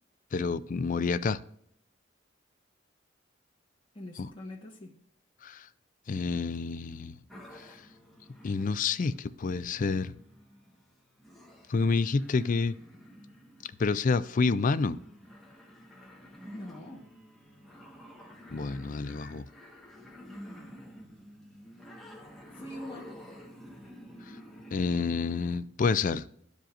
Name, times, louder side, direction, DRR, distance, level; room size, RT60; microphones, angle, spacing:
voice 1, 0.3-1.4 4.2-4.3 5.4-5.7 6.1-7.2 7.6-7.8 8.4-10.1 11.7-12.8 13.8-15.0 18.5-19.5 24.7-26.2, left 4 dB, 45° left, 0.4 m, -28 dB
voice 2, 3.9-4.9 16.5-17.1 22.5-23.3, left 1 dB, 25° left, 1.3 m, -44 dB
sound 1, 7.3-25.6, equal, ahead, 1.3 m, -50 dB
13.0 x 5.1 x 2.5 m
head